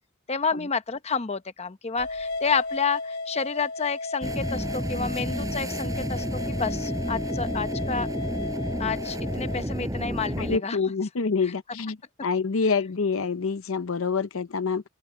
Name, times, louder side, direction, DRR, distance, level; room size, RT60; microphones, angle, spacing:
voice 1, 0.3-8.1 8.8-10.8 11.4-11.5, left 5 dB, 30° left, 0.8 m, -30 dB
sound 1, 2.0-9.7, left 3 dB, 55° left, 4.1 m, -35 dB
sound 2, 4.2-10.6, equal, 15° right, 5.4 m, -31 dB
voice 2, 10.4-12.0 12.2-14.8, left 5 dB, 70° left, 0.7 m, -26 dB
open air
head